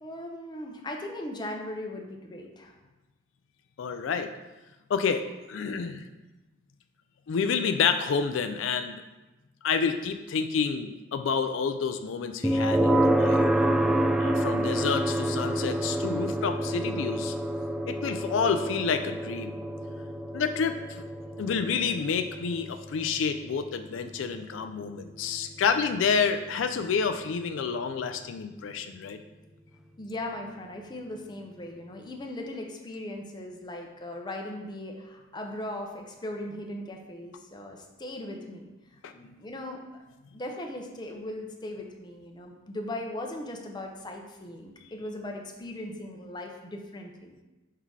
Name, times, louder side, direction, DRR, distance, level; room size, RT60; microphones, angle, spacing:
voice 1, 0.0-2.7 30.0-38.7 39.1-40.0 40.3-47.3, left 1 dB, 25° left, 2 dB, 0.7 m, -38 dB
voice 2, 3.8-4.3 4.9-5.2 5.5-6.1 7.3-9.0 9.6-13.7 14.2-17.3 17.9-19.6 20.3-21.1 21.4-29.2 39.0-39.1, left 6 dB, 85° left, 8 dB, 0.4 m, -29 dB
sound 1, 12.4-27.4, right 1 dB, 5° right, 0.3 m, -28 dB
5.6 x 3.9 x 4.7 m, 1.1 s
head